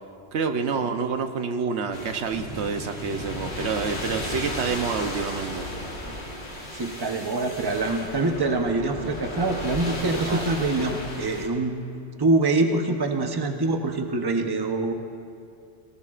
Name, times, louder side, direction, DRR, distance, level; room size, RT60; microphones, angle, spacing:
voice 1, 0.3-5.7 10.3-10.4, right 5 dB, 80° right, 7 dB, 1.1 m, -28 dB
sound 1, 1.9-11.5, left 1 dB, 70° left, 2.5 m, -35 dB
sound 2, 2.3-6.3, left 1 dB, 55° left, 2.3 m, -40 dB
voice 2, 6.7-11.7 12.2-14.9, right 2 dB, 25° right, 4 dB, 0.8 m, -25 dB
23.0 x 18.5 x 2.5 m, 2.4 s
omnidirectional pair, 1.1 m